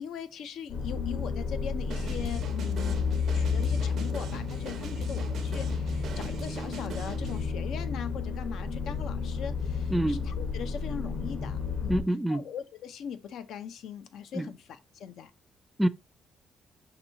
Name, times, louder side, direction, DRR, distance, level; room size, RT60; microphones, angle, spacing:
voice 1, 0.0-12.0 12.3-15.3, left 7 dB, 75° left, 0.5 m, -41 dB
sound 1, 0.7-12.0, left 5 dB, 60° left, 1.0 m, -31 dB
sound 2, 1.9-7.4, right 5 dB, 70° right, 0.7 m, -41 dB
voice 2, 9.9-10.3 11.9-12.4 14.3-14.5 15.8-15.9, right 1 dB, 5° right, 0.3 m, -26 dB
5.3 x 2.9 x 2.6 m
cardioid pair, 90°, 0 cm